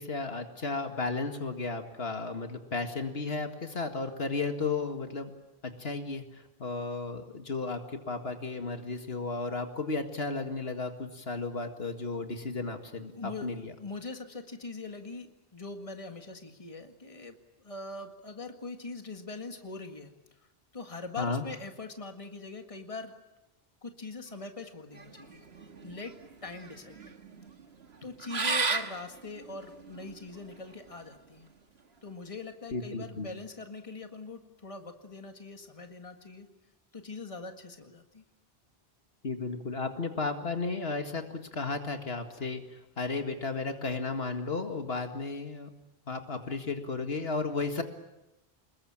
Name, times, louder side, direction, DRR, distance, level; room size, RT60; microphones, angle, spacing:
voice 1, 0.0-5.3 5.6-13.7 21.2-21.4 32.7-33.3 39.2-45.7 46.1-47.8, left 3 dB, 70° left, 6 dB, 2.2 m, -34 dB
voice 2, 13.1-20.1 20.4-20.5 20.7-23.2 23.8-25.4 25.8-27.0 28.0-31.5 32.0-36.5 36.9-38.3, left 3 dB, 30° left, 5 dB, 1.9 m, -42 dB
sound 1, 24.9-30.7, right 4 dB, 75° right, 1.9 m, -35 dB
26.5 x 21.5 x 8.8 m, 0.96 s
omnidirectional pair, 1.1 m